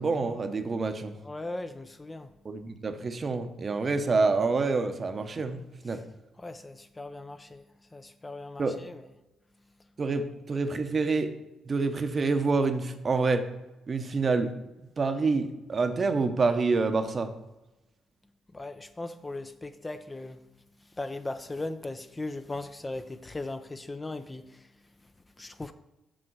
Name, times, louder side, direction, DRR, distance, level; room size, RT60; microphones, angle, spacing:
voice 1, 0.0-1.2 2.4-6.0 8.6-8.8 10.0-11.3 11.7-13.4 13.9-14.5 15.0-17.3, right 4 dB, 35° right, 0.8 m, -27 dB
voice 2, 1.2-2.4 5.9-6.0 6.4-9.1 9.6-9.9 18.5-20.5 20.8-25.7, left 2 dB, 20° left, 0.4 m, -39 dB
6.5 x 6.4 x 4.6 m
cardioid pair, 90°, 0 cm